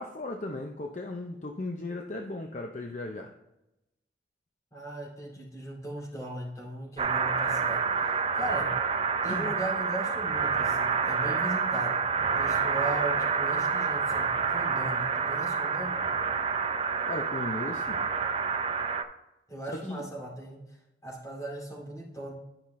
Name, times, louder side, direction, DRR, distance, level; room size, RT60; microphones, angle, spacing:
voice 1, 0.0-3.3 9.3-9.5 17.1-18.0 19.7-20.0, left 2 dB, 40° left, 3 dB, 0.6 m, -36 dB
voice 2, 4.7-8.7 9.2-12.0 12.4-16.0 19.5-20.6 21.0-22.3, right 1 dB, 20° left, -3 dB, 2.5 m, -38 dB
sound 1, 7.0-19.0, right 5 dB, 30° right, 0.5 m, -28 dB
10.5 x 5.6 x 3.1 m, 0.92 s
head